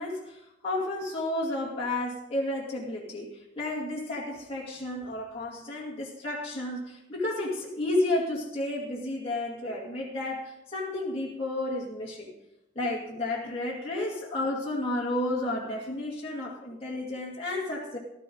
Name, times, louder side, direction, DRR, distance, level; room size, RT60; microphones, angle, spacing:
voice 1, 0.0-12.3 12.8-18.0, left 1 dB, 35° left, -4 dB, 2.4 m, -32 dB
15.0 x 13.0 x 3.9 m, 0.87 s
head